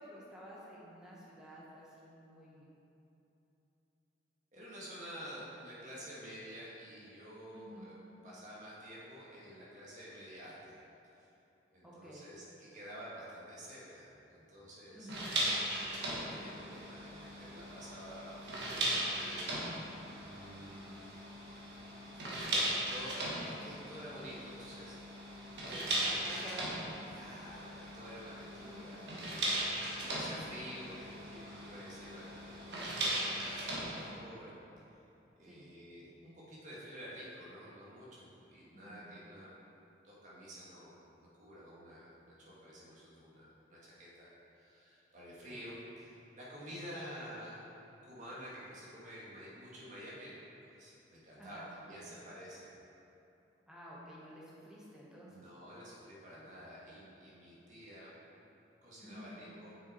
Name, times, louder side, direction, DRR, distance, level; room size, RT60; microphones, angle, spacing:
voice 1, 0.0-2.7 7.5-7.9 11.8-12.2 14.9-15.3 18.7-19.1 25.7-26.7 28.6-29.1 29.9-30.2 35.4-35.7 38.7-39.1 45.5-45.6 51.4-51.7 53.7-55.5 59.0-59.4, equal, 5° right, -6 dB, 1.1 m, -51 dB
voice 2, 4.5-8.0 8.2-10.8 11.1-11.3 11.7-15.1 15.8-19.7 20.1-21.2 21.5-21.7 22.4-25.0 25.6-26.3 27.1-29.0 29.6-34.5 35.3-39.5 40.0-44.3 44.5-47.7 48.0-52.7 55.3-58.2 58.8-59.8, equal, 40° right, -7 dB, 1.7 m, -50 dB
sound 1, 15.1-34.1, right 1 dB, 70° right, 1.4 m, -38 dB
6.8 x 6.0 x 4.3 m, 3.0 s
head